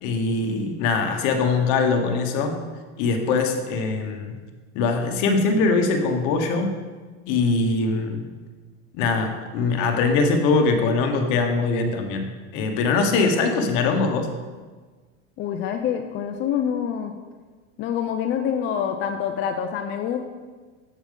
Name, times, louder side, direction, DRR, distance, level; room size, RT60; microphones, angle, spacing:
voice 1, 0.0-2.6 3.0-4.4 4.7-6.8 7.3-8.3 8.9-14.3, left 4 dB, 55° left, 5 dB, 1.1 m, -22 dB
voice 2, 15.4-17.1 17.8-20.2, left 8 dB, 30° left, 5 dB, 0.4 m, -26 dB
7.5 x 6.9 x 3.7 m, 1.4 s
supercardioid pair, 140°, 37 cm